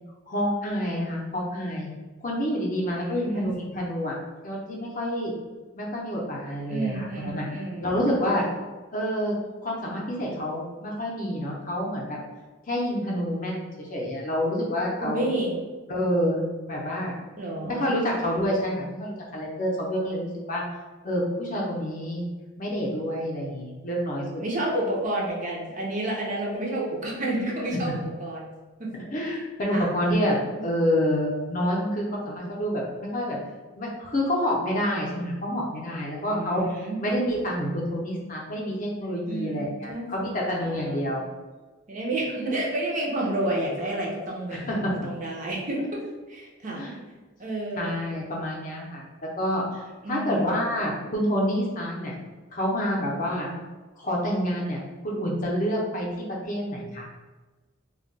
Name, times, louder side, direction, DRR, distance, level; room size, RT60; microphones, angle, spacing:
voice 1, 0.3-1.9 2.2-4.1 4.4-5.3 5.7-7.5 7.8-8.5 8.9-9.4 9.6-12.2 12.7-15.3 15.9-16.4 16.7-17.2 17.6-20.6 21.0-22.2 22.6-24.4 29.1-33.4 33.8-36.6 37.0-41.3 44.5-44.9 46.7-47.0 47.8-49.1 49.4-52.1 52.5-53.5 54.0-56.1 56.4-57.1, equal, 40° left, -3 dB, 0.5 m, -28 dB
voice 2, 2.9-3.5 6.7-8.0 15.0-15.6 17.4-17.9 24.2-28.5 28.8-28.9 29.7-29.9 30.6-30.7 36.3-37.0 39.3-41.1 41.9-46.0 46.3-46.8 47.4-48.0 50.0-50.6 53.2-53.6, right 1 dB, 35° right, -3 dB, 0.5 m, -30 dB
2.2 x 2.2 x 3.8 m, 1.3 s
head